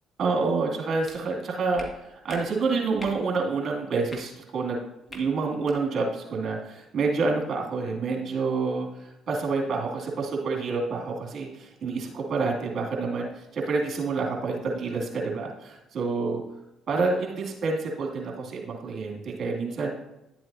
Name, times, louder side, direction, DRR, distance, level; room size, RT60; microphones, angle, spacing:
voice 1, 0.2-4.8 5.1-16.4 16.9-19.9, right 4 dB, 55° right, 0 dB, 2.5 m, -28 dB
sound 1, 1.0-1.2 1.8-1.9 2.3-2.4 3.0-3.2 4.1-4.2 5.1-5.2 5.6-5.8, left 1 dB, 25° left, 2.1 m, -42 dB
11.0 x 7.7 x 2.8 m, 0.90 s
hypercardioid pair, 60°, 0 cm